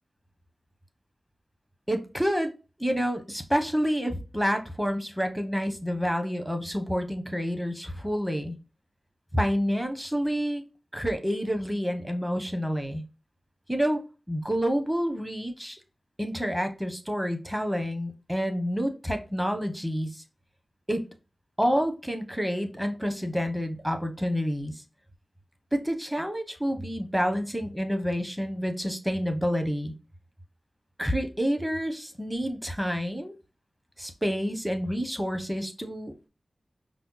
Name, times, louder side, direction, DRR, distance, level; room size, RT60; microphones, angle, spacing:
voice 1, 1.9-2.5 2.8-8.6 9.3-10.6 10.9-13.0 13.7-14.0 14.3-15.8 16.2-20.2 20.9-21.1 21.6-24.7 25.7-29.9 31.0-33.3 34.0-36.3, equal, 5° right, 6 dB, 0.9 m, -28 dB
5.2 x 2.1 x 2.3 m, 0.30 s
cardioid pair, 45°, 0 cm